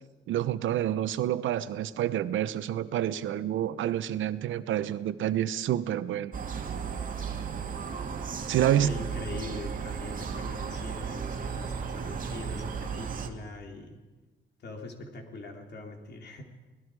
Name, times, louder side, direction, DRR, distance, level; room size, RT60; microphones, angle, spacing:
voice 1, 0.3-6.3 8.5-8.9, right 11 dB, 75° right, 13 dB, 0.9 m, -28 dB
sound 1, 6.3-13.3, right 6 dB, 45° right, 2.1 m, -35 dB
voice 2, 8.5-14.0 14.6-16.4, left 2 dB, 60° left, 2 dB, 3.5 m, -42 dB
28.5 x 19.0 x 4.8 m, 1.3 s
cardioid pair, 90°, 20 cm